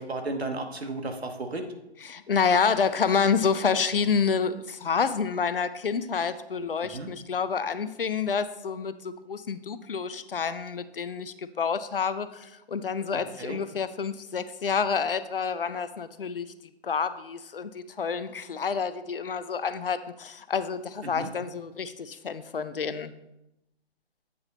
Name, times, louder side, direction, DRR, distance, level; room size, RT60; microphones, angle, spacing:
voice 1, 0.0-1.7 6.8-7.1 13.1-13.6 21.0-21.3, right 2 dB, 70° right, 5 dB, 1.2 m, -34 dB
voice 2, 2.1-16.5 16.8-23.1, left 6 dB, 55° left, 13 dB, 0.5 m, -28 dB
8.4 x 4.8 x 4.1 m, 0.90 s
figure-of-eight pair, 135°, 33 cm